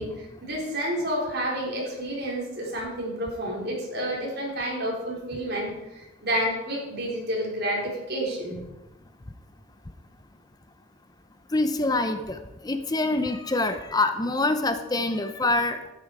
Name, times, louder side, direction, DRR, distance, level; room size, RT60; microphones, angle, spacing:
voice 1, 0.0-8.6, equal, 55° right, -3 dB, 4.3 m, -30 dB
voice 2, 11.5-15.8, left 2 dB, 20° left, 8 dB, 0.7 m, -25 dB
12.0 x 10.0 x 4.9 m, 0.98 s
head